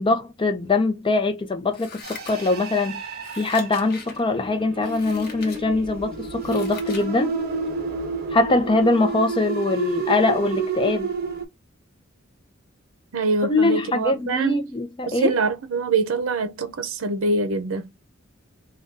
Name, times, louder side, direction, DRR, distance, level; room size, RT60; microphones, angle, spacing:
voice 1, 0.0-3.0 3.3-7.3 8.3-11.1 13.5-15.3, left 2 dB, 25° left, 0.6 m, -22 dB
Scissors, 1.7-2.8 3.2-4.2 4.8-5.6 6.1-7.1 7.5-7.6, left 5 dB, 50° left, 0.9 m, -41 dB
sound 1, 2.0-11.4, right 4 dB, 50° right, 0.7 m, -30 dB
voice 2, 13.1-14.6 15.1-17.9, right 3 dB, 85° right, 0.5 m, -24 dB
2.6 x 2.3 x 3.6 m
head